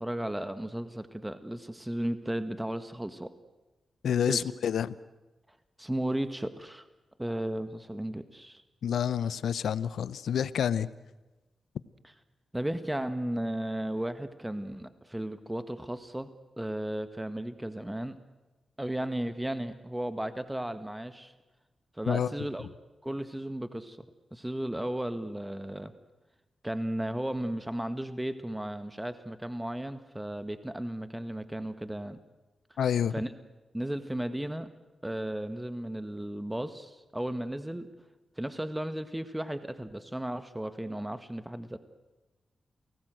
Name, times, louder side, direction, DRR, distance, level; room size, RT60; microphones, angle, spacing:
voice 1, 0.0-3.3 4.3-4.5 5.8-6.9 7.2-8.6 12.5-16.3 16.6-18.2 18.8-21.3 22.0-22.7 23.0-24.1 24.3-25.9 26.6-32.2 33.1-33.3 33.7-34.7 35.0-37.9 38.4-41.8, right 1 dB, 10° right, 1.7 m, -34 dB
voice 2, 4.0-4.9 8.8-10.9 22.1-22.3 32.8-33.1, left 8 dB, 80° left, 0.7 m, -28 dB
29.0 x 18.5 x 7.8 m
supercardioid pair, 40°, 0 cm